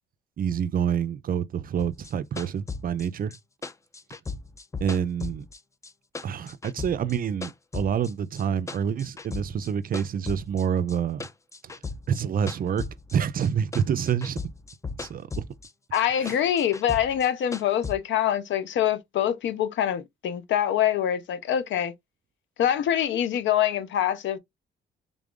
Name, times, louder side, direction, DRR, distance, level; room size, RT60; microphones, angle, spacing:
voice 1, 0.4-3.3 4.8-5.5 6.2-11.2 12.1-14.4 15.0-15.5 16.2-16.4, right 8 dB, 45° right, 0.4 m, -27 dB
sound 1, 1.8-5.9 6.1-8.1 8.4-9.7 9.9-13.5 13.7-15.7 15.9-17.9, left 4 dB, 15° left, 0.4 m, -37 dB
voice 2, 15.9-21.9 22.6-24.4, left 10 dB, 70° left, 0.7 m, -25 dB
3.6 x 2.4 x 3.6 m
cardioid pair, 90°, 20 cm